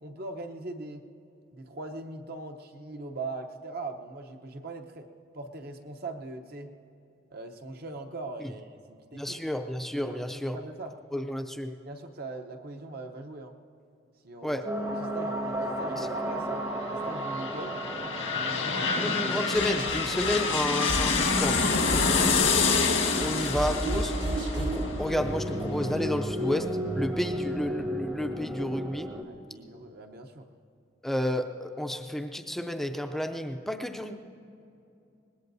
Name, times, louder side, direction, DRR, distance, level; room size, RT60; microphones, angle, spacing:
voice 1, 0.0-1.1 1.5-5.1 5.3-6.7 7.3-9.4 10.1-10.9 11.6-13.6 14.2-17.8 18.3-18.8 21.5-22.8 29.2-30.5, right 2 dB, 50° right, 5 dB, 0.9 m, -41 dB
voice 2, 9.1-10.6 11.1-11.7 14.4-14.7 16.0-16.1 18.9-21.6 23.2-24.2 24.5-29.1 31.0-34.1, left 1 dB, ahead, 5 dB, 0.5 m, -31 dB
sound 1, 14.6-29.2, equal, 20° right, 0.8 m, -34 dB
sound 2, 17.0-26.6 27.0-27.1, left 5 dB, 85° left, 1.6 m, -28 dB
sound 3, 19.5-24.9, right 1 dB, 75° right, 2.2 m, -33 dB
24.5 x 20.0 x 2.7 m, 2.8 s
head